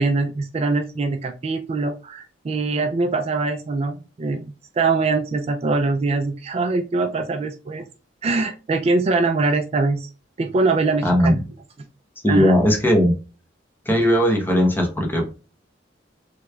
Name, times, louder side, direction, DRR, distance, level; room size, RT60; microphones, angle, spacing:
voice 1, 0.0-7.9 8.2-10.1 10.4-11.4 12.3-12.6, right 3 dB, 35° right, 5 dB, 0.3 m, -23 dB
voice 2, 11.0-11.3 12.2-13.1 13.9-15.3, equal, 10° left, 1 dB, 0.9 m, -18 dB
3.3 x 3.1 x 2.3 m, 0.33 s
head